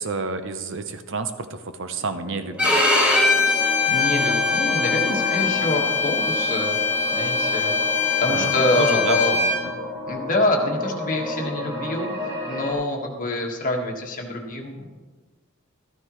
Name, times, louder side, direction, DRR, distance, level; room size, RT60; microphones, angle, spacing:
voice 1, 0.0-2.9 8.3-9.5, right 4 dB, 60° right, 9 dB, 0.8 m, -29 dB
sound 1, 2.0-12.7, left 1 dB, 25° right, 2.6 m, -31 dB
Bowed string instrument, 2.6-9.6, left 4 dB, 5° right, 3.5 m, -22 dB
voice 2, 3.6-6.8 7.1-9.4 10.1-14.9, left 1 dB, 40° left, 1 dB, 1.6 m, -26 dB
13.5 x 13.0 x 3.1 m, 1.3 s
head